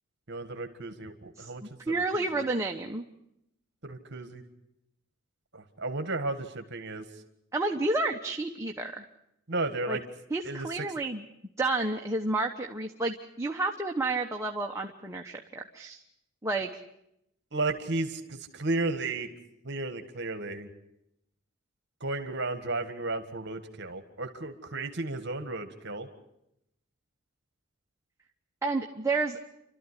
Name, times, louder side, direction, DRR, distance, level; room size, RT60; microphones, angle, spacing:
voice 1, 0.3-1.8 2.1-2.4 3.8-4.4 5.5-7.1 9.5-10.0 10.4-10.7 17.5-19.3 19.6-20.7 22.0-26.1, right 2 dB, 55° right, 8 dB, 1.8 m, -33 dB
voice 2, 1.4-3.0 7.5-9.0 9.9-10.0 10.3-11.2 11.6-16.0 16.4-16.7 28.6-29.4, right 2 dB, 15° right, 2 dB, 1.1 m, -30 dB
29.5 x 13.0 x 9.9 m, 0.82 s
head